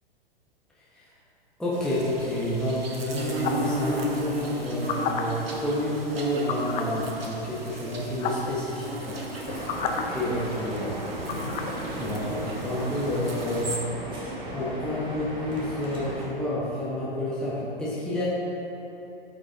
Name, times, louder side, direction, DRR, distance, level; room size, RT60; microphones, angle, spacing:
voice 1, 1.6-9.7 10.1-10.9 11.9-13.7 14.5-18.3, left 1 dB, ahead, -8 dB, 1.2 m, -29 dB
sound 1, 1.7-13.8, right 1 dB, 75° right, 1.2 m, -35 dB
sound 2, 3.4-3.7 4.7-5.2 6.5-6.9 7.9-8.0 8.2-8.5 9.3-10.0 11.3-11.7, left 7 dB, 20° left, 0.5 m, -30 dB
sound 3, 9.4-16.3, equal, 15° right, 1.6 m, -36 dB
12.5 x 5.2 x 3.6 m, 3.0 s
figure-of-eight pair, 105°, 30 cm